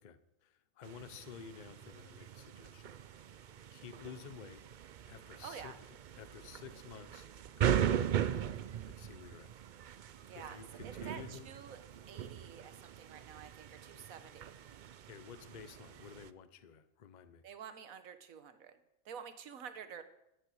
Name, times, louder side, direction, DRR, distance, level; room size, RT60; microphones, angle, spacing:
voice 1, 0.0-3.3 3.7-4.6 5.1-5.7 6.1-7.3 7.6-8.6 8.9-9.5 10.0-11.5 15.1-17.4, left 7 dB, 40° left, 12 dB, 0.7 m, -52 dB
sound 1, 0.8-16.3, right 9 dB, 70° right, 0.4 m, -39 dB
voice 2, 5.4-5.7 10.3-11.8 12.1-14.5 17.4-18.8 19.0-20.0, right 7 dB, 90° right, 10 dB, 1.4 m, -49 dB
12.5 x 10.0 x 6.3 m, 0.85 s
omnidirectional pair, 1.4 m